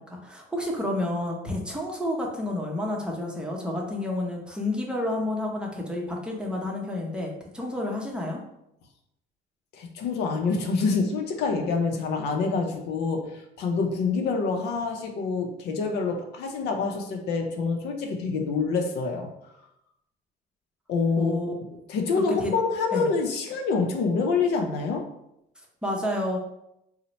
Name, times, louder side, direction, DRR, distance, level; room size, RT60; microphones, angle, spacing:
voice 1, 0.0-8.4 21.2-21.5 22.4-22.5 22.9-23.1 25.8-26.4, left 1 dB, 5° right, -1 dB, 0.7 m, -30 dB
voice 2, 9.7-19.3 20.9-21.4 21.9-25.0, left 4 dB, 75° left, 3 dB, 0.6 m, -26 dB
2.8 x 2.1 x 4.0 m, 0.82 s
cardioid pair, 110°, 17 cm